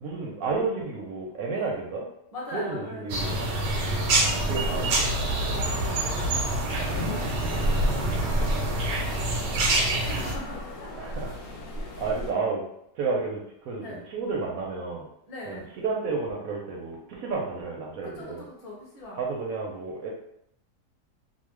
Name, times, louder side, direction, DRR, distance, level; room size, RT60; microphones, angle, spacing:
voice 1, 0.0-2.1 2.5-3.4 4.4-5.6 11.0-11.3 12.0-12.7 13.0-13.8 14.1-15.1 15.5-18.5 19.2-20.1, right 4 dB, 70° right, -1 dB, 0.9 m, -31 dB
voice 2, 2.3-3.7 3.9-4.1 5.5-6.3 6.7-11.2 11.7-12.0 13.8-14.0 15.3-15.7 18.0-19.3, left 1 dB, 30° left, -5 dB, 0.8 m, -42 dB
sound 1, 3.1-10.3, right 2 dB, 85° right, 1.3 m, -26 dB
sound 2, 3.6-12.3, equal, 70° left, 0.8 m, -33 dB
3.0 x 2.0 x 3.1 m, 0.75 s
omnidirectional pair, 1.8 m